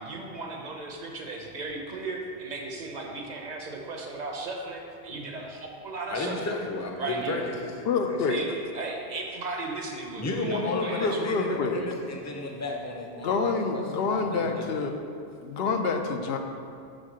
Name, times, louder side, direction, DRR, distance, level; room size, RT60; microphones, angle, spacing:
voice 1, 0.0-6.4 7.0-7.4 8.3-11.2, right 3 dB, 45° right, 1 dB, 0.8 m, -36 dB
voice 2, 6.1-8.2 10.2-14.9, left 2 dB, 20° left, 1 dB, 0.5 m, -33 dB
voice 3, 7.9-8.4 10.5-11.8 13.2-15.0 15.4-16.4, left 4 dB, 70° left, 5 dB, 0.8 m, -27 dB
6.4 x 3.6 x 6.2 m, 2.4 s
omnidirectional pair, 1.1 m